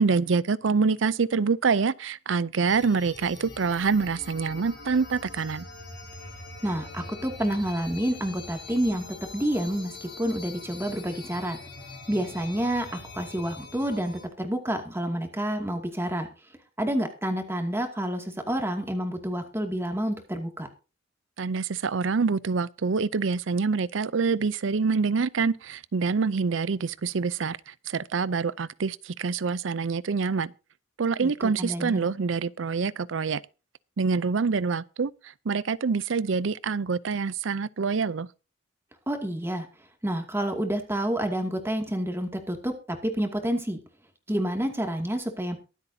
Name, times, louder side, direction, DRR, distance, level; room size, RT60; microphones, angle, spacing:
voice 1, 0.0-5.7 21.4-30.5 31.0-33.4 34.0-35.1 35.5-38.3, right 5 dB, 75° right, 0.5 m, -26 dB
sound 1, 2.7-14.3, left 3 dB, 60° left, 6.1 m, -43 dB
voice 2, 6.6-9.1 9.3-11.6 12.1-16.3 16.8-20.7 31.2-32.1 39.1-39.7 40.0-42.7 43.0-43.8 44.3-45.6, right 1 dB, 15° right, 2.3 m, -29 dB
23.0 x 8.1 x 2.8 m
head